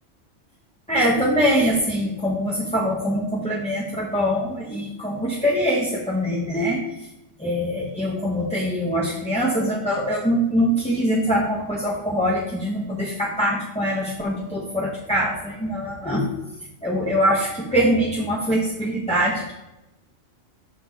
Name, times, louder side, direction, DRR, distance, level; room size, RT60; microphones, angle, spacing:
voice 1, 0.9-7.1 7.4-16.2 16.8-19.5, equal, 5° left, -5 dB, 0.8 m, -23 dB
6.4 x 6.0 x 3.5 m, 0.97 s
omnidirectional pair, 1.3 m